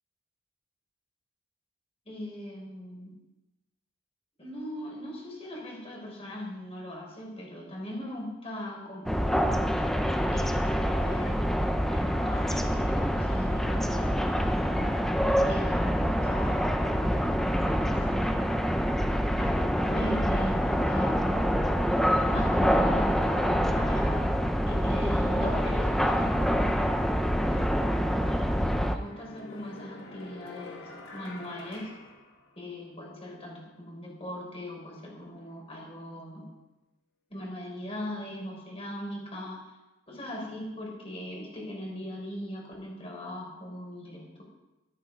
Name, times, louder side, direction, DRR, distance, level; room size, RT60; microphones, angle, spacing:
voice 1, 2.0-3.1 4.4-9.4 10.3-11.4 11.8-15.0 15.5-18.9 19.4-21.7 22.3-24.4 24.7-27.1 27.4-28.7 28.9-31.9 32.6-36.5 37.3-39.6 40.1-44.4, left 1 dB, 30° left, -2 dB, 4.8 m, -39 dB
sound 1, 9.1-29.0, equal, ahead, 0.7 m, -26 dB
sound 2, 27.8-33.0, left 2 dB, 75° left, 2.5 m, -47 dB
13.5 x 13.5 x 4.8 m, 1.0 s
head